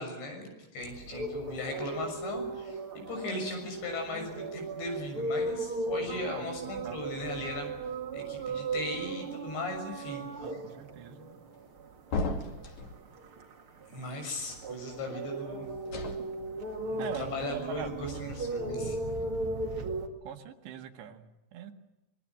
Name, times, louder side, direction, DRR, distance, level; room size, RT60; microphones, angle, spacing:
voice 1, 0.0-7.7 8.1-10.2 10.5-10.6 11.1-11.4 13.9-15.7 16.8-19.0, left 2 dB, 85° left, 4 dB, 8.8 m, -38 dB
sound 1, 0.8-20.1, right 2 dB, 40° right, 2.1 m, -37 dB
voice 2, 6.1-7.0 10.4-11.2 17.0-17.3 17.5-18.3 20.2-21.7, right 8 dB, 85° right, 5 dB, 4.1 m, -42 dB
sound 2, 12.1-13.0 15.9-16.2, left 3 dB, 50° left, 3.6 m, -33 dB
25.5 x 23.0 x 7.5 m, 0.97 s
omnidirectional pair, 4.9 m